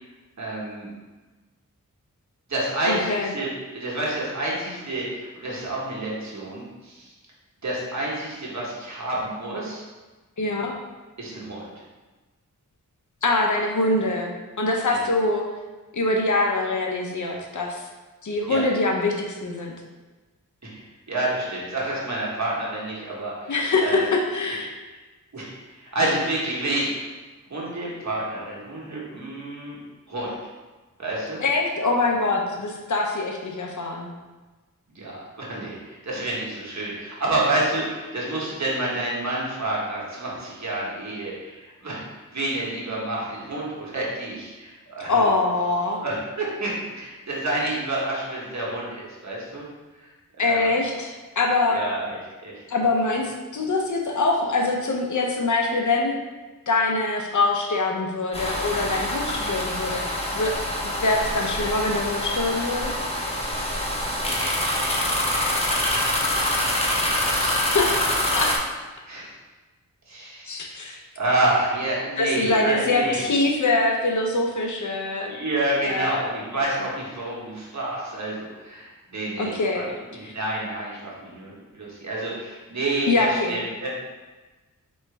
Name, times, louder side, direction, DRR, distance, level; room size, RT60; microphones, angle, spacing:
voice 1, 0.4-0.9 2.5-7.1 7.6-9.8 11.2-11.6 14.9-15.1 18.5-18.6 20.6-20.8 21.1-23.5 23.8-24.1 25.3-27.1 27.5-29.8 30.1-30.3 31.0-31.4 34.9-42.0 42.3-45.2 46.0-49.6 50.0-50.1 50.4-50.7 51.7-52.5 59.3-59.6 65.6-67.7 69.1-69.3 70.1-70.8 71.2-73.2 75.3-83.9, right 1 dB, 55° right, -5 dB, 1.4 m, -29 dB
voice 2, 2.9-3.3 10.4-10.7 13.2-14.3 14.6-15.4 15.9-17.8 18.2-19.7 23.5-24.7 31.4-34.1 45.1-46.0 50.4-51.8 52.7-56.2 56.7-60.0 60.3-60.6 60.9-63.0 67.4-68.5 70.5-71.0 72.2-75.3 75.8-76.3 79.4-79.9 80.2-80.3 83.1-83.6, left 2 dB, 60° left, 1 dB, 0.7 m, -24 dB
sound 1, 58.3-68.6, left 1 dB, 20° left, 0.9 m, -25 dB
4.6 x 3.1 x 3.3 m, 1.2 s
cardioid pair, 55°, 34 cm